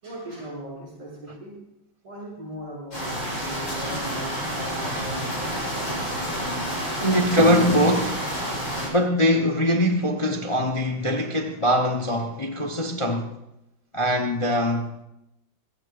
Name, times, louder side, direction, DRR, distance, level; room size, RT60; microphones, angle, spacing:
voice 1, 0.0-1.5 2.0-3.1 3.4-5.9, equal, 90° right, 7.9 m, -38 dB
sound 1, 2.9-8.9, equal, 65° left, 8.7 m, -29 dB
voice 2, 7.0-8.3 8.9-13.4 13.9-14.9, equal, 40° left, 0.4 m, -22 dB
26.0 x 15.5 x 2.6 m
omnidirectional pair, 2.2 m